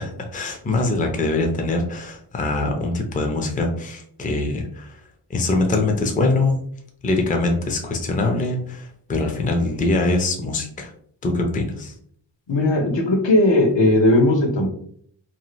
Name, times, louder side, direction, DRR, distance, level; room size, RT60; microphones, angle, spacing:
voice 1, 0.0-5.0 5.3-6.6 7.0-10.9 11.2-11.9, left 2 dB, 20° left, 3 dB, 0.5 m, -23 dB
voice 2, 12.5-14.7, left 1 dB, 70° left, 1 dB, 0.8 m, -17 dB
2.7 x 2.4 x 3.0 m, 0.62 s
wide cardioid pair, 85°, 46 cm